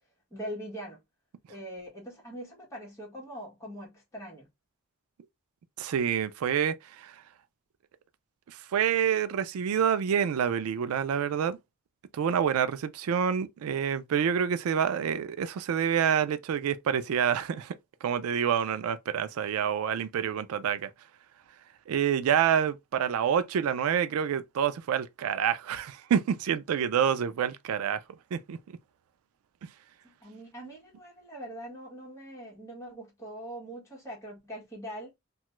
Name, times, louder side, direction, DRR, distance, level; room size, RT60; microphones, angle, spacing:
voice 1, 0.3-1.0 1.5-4.5 30.0-35.1, equal, 15° left, 1.3 m, -42 dB
voice 2, 5.8-7.1 8.5-11.6 12.1-17.8 18.0-20.9 21.9-28.0 28.3-28.6 29.6-29.7, right 8 dB, 85° right, 0.3 m, -27 dB
2.8 x 2.3 x 3.0 m
head